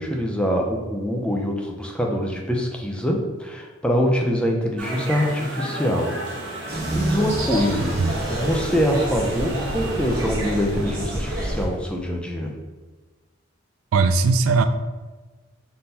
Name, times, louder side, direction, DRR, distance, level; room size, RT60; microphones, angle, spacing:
voice 1, 0.0-6.2 6.5-8.0 8.3-12.5, equal, 5° left, 1 dB, 0.4 m, -24 dB
sound 1, 4.8-11.7, right 2 dB, 65° right, 1.0 m, -33 dB
sound 2, 6.7-11.7, right 1 dB, 45° right, 1.2 m, -28 dB
voice 2, 13.9-14.6, right 4 dB, 85° right, 9 dB, 0.3 m, -19 dB
4.0 x 3.7 x 2.8 m, 1.3 s
head